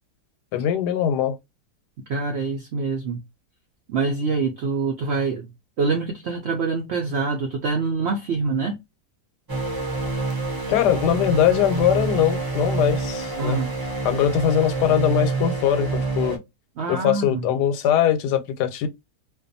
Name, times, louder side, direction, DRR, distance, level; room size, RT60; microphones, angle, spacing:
voice 1, 0.5-1.4 10.7-13.6 14.0-16.4 16.9-18.9, left 10 dB, 85° left, 1.2 m, -21 dB
voice 2, 2.1-3.2 3.9-5.5 5.8-8.8 13.4-13.8 16.8-17.5, right 4 dB, 75° right, 0.6 m, -25 dB
sound 1, 9.5-16.4, right 3 dB, 30° right, 0.4 m, -27 dB
2.5 x 2.3 x 2.5 m
omnidirectional pair, 1.7 m